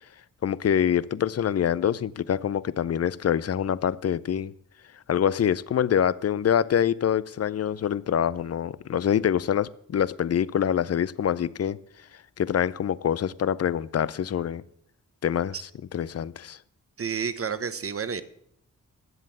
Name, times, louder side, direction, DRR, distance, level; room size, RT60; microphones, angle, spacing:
voice 1, 0.4-4.5 5.1-11.8 12.4-14.6 15.2-15.7 15.9-16.6, left 9 dB, 45° left, 0.5 m, -25 dB
voice 2, 17.0-18.2, right 6 dB, 40° right, 1.0 m, -30 dB
11.0 x 7.5 x 7.6 m
cardioid pair, 65°, 34 cm